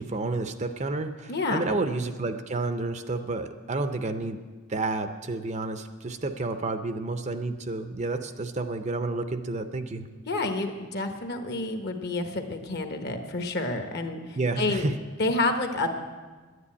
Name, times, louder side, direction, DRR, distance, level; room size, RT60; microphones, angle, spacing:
voice 1, 0.0-4.4 4.7-10.1 14.4-15.0, right 3 dB, 35° right, 9 dB, 0.6 m, -30 dB
voice 2, 1.3-1.8 10.3-14.9 15.2-15.9, left 2 dB, 50° left, 6 dB, 1.2 m, -29 dB
11.0 x 9.8 x 8.6 m, 1.4 s
head